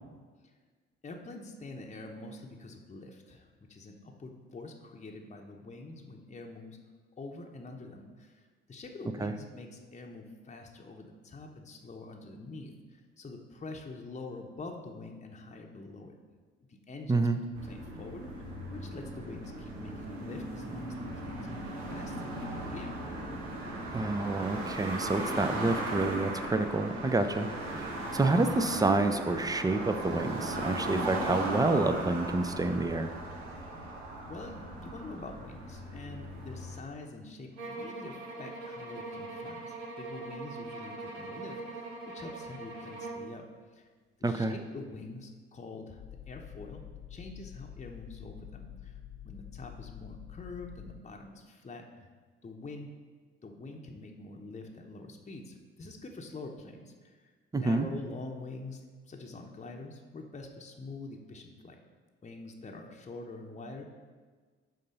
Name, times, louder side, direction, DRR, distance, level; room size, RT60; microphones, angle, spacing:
voice 1, 1.0-6.8 7.2-16.1 16.6-17.3 17.6-23.0 27.5-27.8 33.6-33.9 34.3-43.9 44.2-46.8 47.1-52.1 52.4-52.9 53.4-61.8 62.2-63.8, left 2 dB, 20° left, 2 dB, 1.0 m, -45 dB
sound 1, 17.6-36.8, right 1 dB, 70° right, 1.2 m, -37 dB
voice 2, 23.9-27.5 28.1-33.1 44.2-44.5 57.5-57.9, right 2 dB, 10° right, 9 dB, 0.6 m, -28 dB
sound 2, 37.6-43.3, right 2 dB, 85° right, 0.8 m, -42 dB
sound 3, 46.0-51.0, left 10 dB, 50° left, 0.8 m, -47 dB
11.0 x 3.9 x 5.3 m, 1.5 s
figure-of-eight pair, 45°, 32 cm